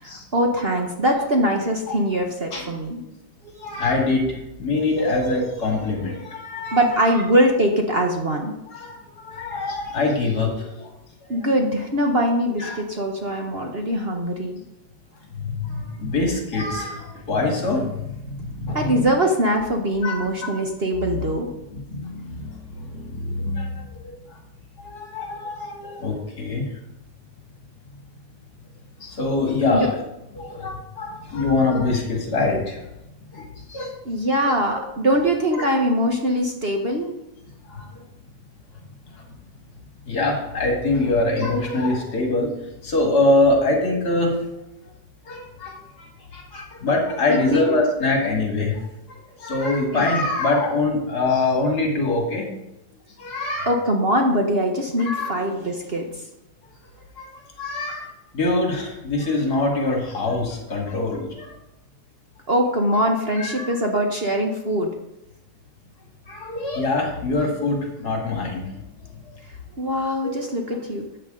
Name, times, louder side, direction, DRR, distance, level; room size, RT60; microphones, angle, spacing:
voice 1, 0.0-3.0 6.7-8.6 11.3-14.6 18.7-21.5 29.7-29.9 34.0-37.1 47.3-47.8 49.9-50.0 53.7-56.1 62.5-64.9 69.8-71.1, equal, 40° right, 2 dB, 1.1 m, -22 dB
voice 2, 3.4-7.2 8.7-10.9 11.2-11.5 12.6-12.8 15.4-19.1 20.0-20.5 21.0-21.3 21.7-24.4 24.8-26.7 29.0-29.9 30.3-32.9 33.3-33.9 34.4-34.5 35.6-35.7 37.7-38.0 39.1-39.2 40.1-42.5 42.8-44.4 45.3-52.5 53.2-53.7 55.0-55.5 57.2-57.3 57.6-58.1 58.3-61.5 63.3-63.8 66.3-68.7 70.2-70.4, left 2 dB, 65° left, 1 dB, 2.7 m, -24 dB
13.0 x 8.2 x 3.8 m, 0.91 s
omnidirectional pair, 1.8 m